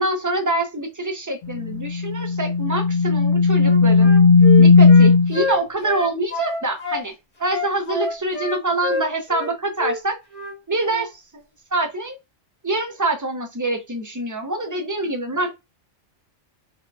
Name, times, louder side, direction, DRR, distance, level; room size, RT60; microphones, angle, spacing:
voice 1, 0.0-4.1 4.6-7.1 7.4-10.2 10.7-11.4 11.7-12.2 12.6-15.5, right 2 dB, 30° right, 0.3 m, -25 dB
sound 1, 1.5-5.4, left 4 dB, 65° left, 0.7 m, -14 dB
Wind instrument woodwind instrument, 3.6-7.0 7.5-9.5 9.8-10.0 10.3-10.5 10.8-11.1, left 2 dB, 30° left, 1.2 m, -28 dB
3.6 x 3.4 x 2.2 m
omnidirectional pair, 1.2 m